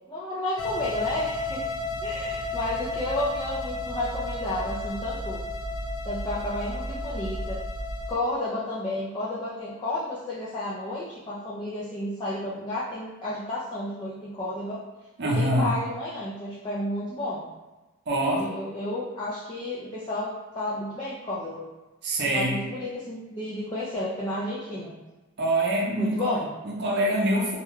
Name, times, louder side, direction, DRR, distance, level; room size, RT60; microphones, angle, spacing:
voice 1, 0.0-1.6 2.0-5.4 6.1-7.6 8.1-14.8 15.2-17.5 18.3-21.7 22.2-25.0 26.0-26.5, left 1 dB, 20° left, -7 dB, 0.3 m, -32 dB
sound 1, 0.6-8.1, left 2 dB, 85° left, 0.5 m, -32 dB
voice 2, 15.2-15.8 18.1-18.5 22.0-22.7 25.4-26.4 26.6-27.6, right 1 dB, 50° right, -3 dB, 0.6 m, -25 dB
2.3 x 2.1 x 3.1 m, 1.1 s
head